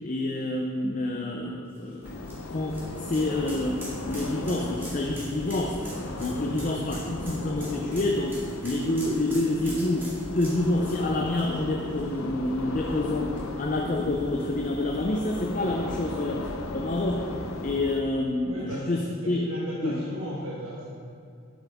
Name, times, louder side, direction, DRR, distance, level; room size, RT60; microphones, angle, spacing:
voice 1, 0.0-2.2 2.5-5.8 6.2-17.3 17.6-19.5 19.8-20.0, left 2 dB, 40° left, 1 dB, 0.5 m, -28 dB
sound 1, 1.7-12.5 12.8-12.9 14.4-14.5, right 1 dB, 10° right, 2.0 m, -44 dB
sound 2, 2.0-18.0, left 2 dB, 85° left, 0.7 m, -36 dB
voice 2, 18.5-18.9 19.2-20.9, equal, 85° right, -5 dB, 1.2 m, -36 dB
10.5 x 7.5 x 3.5 m, 2.3 s
head